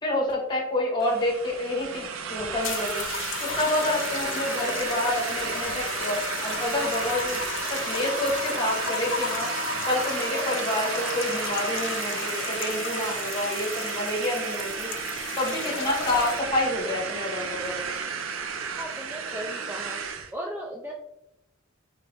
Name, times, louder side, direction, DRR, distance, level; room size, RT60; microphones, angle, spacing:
voice 1, 0.0-3.0 3.4-7.4 7.7-9.5 9.8-14.9 15.4-17.8, left 1 dB, 25° left, -1 dB, 1.2 m, -28 dB
sound 1, 1.0-20.3, right 6 dB, 70° right, 0.5 m, -33 dB
sound 2, 2.6-16.6 17.5-17.9, left 8 dB, 60° left, 0.3 m, -34 dB
voice 2, 18.8-20.0 20.3-20.9, equal, 10° right, -1 dB, 0.3 m, -36 dB
4.0 x 2.8 x 3.3 m, 0.83 s
head